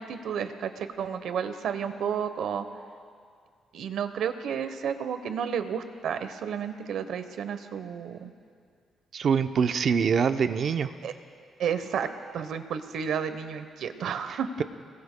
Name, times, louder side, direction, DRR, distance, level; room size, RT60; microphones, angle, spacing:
voice 1, 0.0-2.6 3.7-8.3 11.0-11.1 11.6-12.1 12.3-14.5, right 7 dB, 75° right, 9 dB, 0.9 m, -31 dB
voice 2, 9.1-10.9, right 6 dB, 50° right, 9 dB, 0.6 m, -24 dB
26.0 x 21.5 x 2.2 m, 2.2 s
cardioid pair, 130°, 0 cm